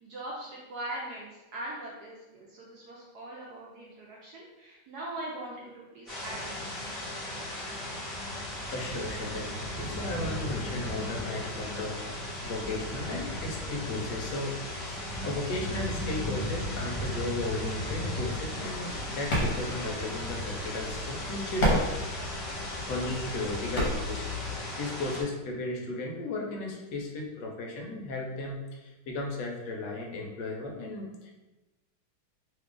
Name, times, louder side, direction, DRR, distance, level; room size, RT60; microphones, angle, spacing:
voice 1, 0.0-7.1, right 1 dB, 80° right, -4 dB, 0.8 m, -41 dB
sound 1, 6.1-25.2, left 1 dB, ahead, 0.7 m, -36 dB
voice 2, 8.4-21.9 22.9-31.3, left 2 dB, 70° left, 0 dB, 1.1 m, -35 dB
sound 2, 18.7-24.6, equal, 55° left, 1.3 m, -33 dB
3.3 x 2.4 x 3.7 m, 1.1 s
omnidirectional pair, 2.3 m